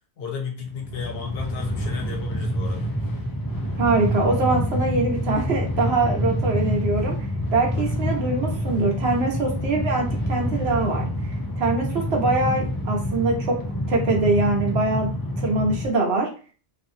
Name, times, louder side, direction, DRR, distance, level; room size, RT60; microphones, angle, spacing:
voice 1, 0.2-2.9 7.7-7.9, left 5 dB, 65° left, 2 dB, 0.8 m, -33 dB
Train, 0.7-15.9, equal, 35° left, 0.3 m, -27 dB
voice 2, 3.8-7.1 7.5-11.1 11.6-13.6 13.9-15.1 15.4-16.3, right 2 dB, 65° right, 0 dB, 1.0 m, -23 dB
2.5 x 2.4 x 2.7 m, 0.38 s
omnidirectional pair, 1.2 m